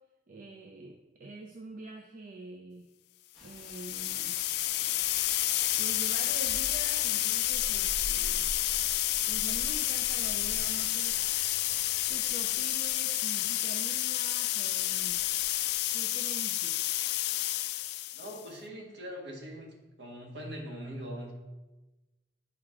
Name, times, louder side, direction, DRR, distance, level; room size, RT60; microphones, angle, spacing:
voice 1, 0.3-2.9 3.4-4.4 5.8-8.5 9.3-11.2 12.1-15.2 15.9-16.8, right 2 dB, 50° right, 3 dB, 0.5 m, -45 dB
Rain, 3.3-12.1, left 1 dB, ahead, 1.4 m, -53 dB
sound 1, 3.5-18.4, left 14 dB, 60° left, 0.3 m, -30 dB
sound 2, 7.4-15.8, left 1 dB, 30° left, 1.0 m, -46 dB
voice 2, 18.1-19.7 20.0-21.3, equal, 65° right, 0 dB, 1.5 m, -41 dB
8.8 x 4.8 x 3.7 m, 1.1 s
head